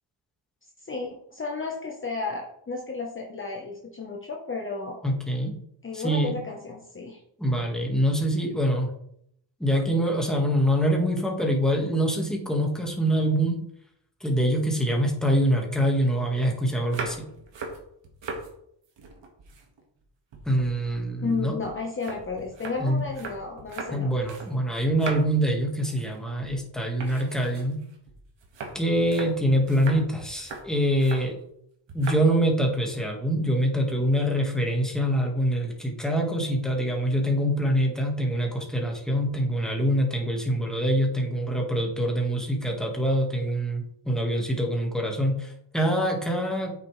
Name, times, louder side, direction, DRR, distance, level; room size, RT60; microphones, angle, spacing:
voice 1, 0.8-5.0 5.8-7.2 21.2-24.1, left 4 dB, 25° left, 0 dB, 1.1 m, -33 dB
voice 2, 5.0-5.6 5.9-6.3 7.4-8.9 9.6-13.6 14.2-17.2 20.4-21.6 22.8-23.0 23.9-27.8 28.7-31.4 31.9-46.8, equal, ahead, 0 dB, 1.7 m, -25 dB
sound 1, 16.8-18.5 18.8-20.0 20.3-24.5 24.8-25.5 25.8-26.2 26.4-26.6 27.0-31.3 31.9-32.3 32.6-33.0, right 3 dB, 70° right, 2.0 m, -39 dB
8.4 x 6.8 x 3.3 m, 0.70 s
wide cardioid pair, 130°, 46 cm